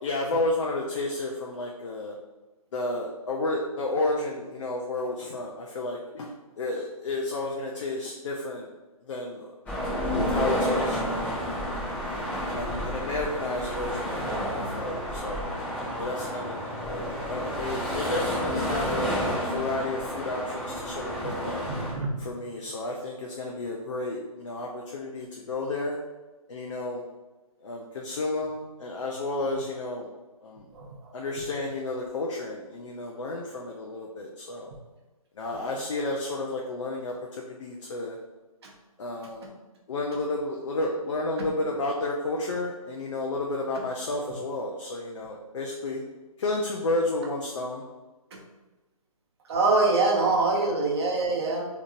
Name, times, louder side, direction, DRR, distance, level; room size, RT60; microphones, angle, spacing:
voice 1, 0.0-2.2 2.7-6.3 6.6-8.7 9.0-10.0 10.3-11.3 12.0-15.5 16.0-21.6 22.2-26.0 26.5-27.0 27.6-30.1 30.4-30.7 31.1-34.7 35.4-38.2 39.0-39.5 39.9-46.0 46.4-47.8, left 2 dB, 55° left, 0 dB, 0.5 m, -32 dB
sound 1, 9.7-21.9, equal, 10° left, 0.6 m, -30 dB
voice 2, 21.8-22.1 30.7-30.9 49.5-51.7, right 3 dB, 45° right, -1 dB, 0.8 m, -24 dB
3.5 x 2.9 x 2.5 m, 1.2 s
figure-of-eight pair, 140°, 19 cm